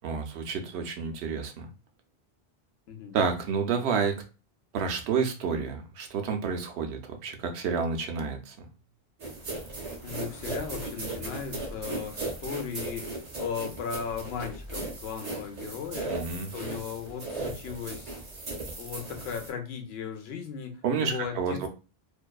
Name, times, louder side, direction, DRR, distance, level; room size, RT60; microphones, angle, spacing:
voice 1, 0.0-1.7 3.1-4.2 4.7-8.7 16.1-16.5 20.8-21.7, right 5 dB, 85° right, 4 dB, 0.8 m, -30 dB
sound 1, 9.2-19.5, right 2 dB, 45° right, 0.6 m, -37 dB
voice 2, 10.0-16.1 16.5-18.1 18.8-21.6, left 7 dB, 80° left, 6 dB, 0.8 m, -37 dB
2.6 x 2.2 x 2.3 m, 0.31 s
omnidirectional pair, 1.1 m